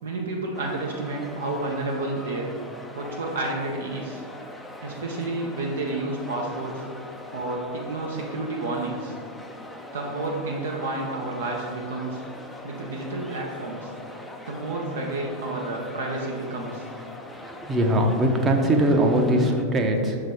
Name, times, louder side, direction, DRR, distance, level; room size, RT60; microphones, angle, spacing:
voice 1, 0.0-2.5 2.9-4.2 4.8-6.8 7.3-9.2 9.9-12.2 12.6-13.9 14.5-16.9, right 2 dB, 65° right, -1 dB, 0.8 m, -30 dB
sound 1, 0.5-19.6, left 1 dB, 5° left, 0.5 m, -41 dB
voice 2, 17.3-20.2, right 1 dB, 20° right, 3 dB, 0.8 m, -21 dB
6.1 x 5.0 x 4.2 m, 2.1 s
figure-of-eight pair, 90°, 0 cm